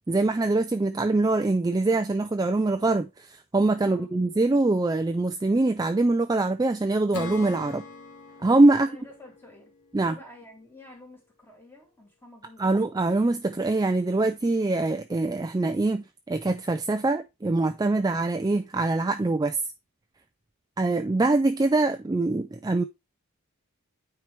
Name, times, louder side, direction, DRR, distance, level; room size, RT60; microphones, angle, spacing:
voice 1, 0.1-7.8 8.4-8.9 9.9-10.2 12.6-19.6 20.8-22.8, right 2 dB, 15° right, 0.3 m, -24 dB
voice 2, 3.8-4.1 8.7-9.7 10.0-12.8, left 1 dB, 10° left, 2.3 m, -49 dB
Acoustic guitar / Strum, 7.1-10.6, left 4 dB, 85° left, 1.7 m, -42 dB
9.1 x 4.6 x 3.3 m
head